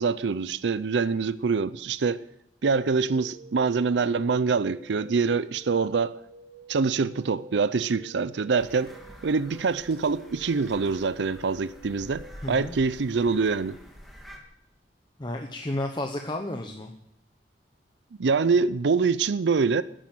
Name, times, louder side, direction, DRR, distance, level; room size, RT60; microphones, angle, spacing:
voice 1, 0.0-2.2 2.6-6.2 6.7-8.9 9.2-13.8 18.2-19.8, right 4 dB, 85° right, 0.5 m, -25 dB
sound 1, 2.8-12.3, right 3 dB, 60° right, 2.2 m, -50 dB
sound 2, 8.6-14.4, equal, ahead, 2.6 m, -48 dB
voice 2, 12.4-12.7 15.2-16.9, left 1 dB, 25° left, 1.1 m, -32 dB
13.5 x 10.0 x 9.1 m
head